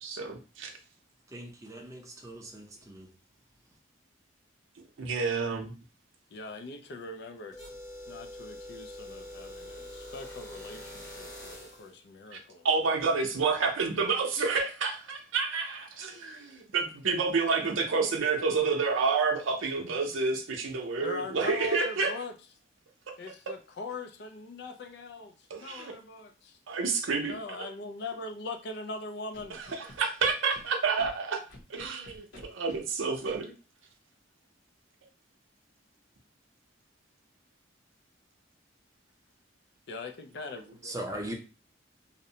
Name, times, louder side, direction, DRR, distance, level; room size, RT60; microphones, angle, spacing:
voice 1, 0.0-0.7 5.0-5.7 12.3-12.4 12.6-22.1 25.5-25.9 26.7-27.7 29.5-31.4 31.7-33.5, right 4 dB, 90° right, 0.6 m, -29 dB
voice 2, 1.3-3.1 40.8-41.3, right 1 dB, 15° right, 0.4 m, -39 dB
voice 3, 6.3-7.6 8.1-12.7 21.0-22.3 23.2-26.6 27.3-29.6 39.9-41.0, left 3 dB, 55° left, 0.3 m, -41 dB
sound 1, 7.5-11.9, left 1 dB, 20° left, 0.9 m, -44 dB
Scratching (performance technique), 29.3-30.6 31.0-31.1 31.5-32.8 33.3-33.4, left 1 dB, 80° left, 0.9 m, -49 dB
2.6 x 2.0 x 2.7 m
head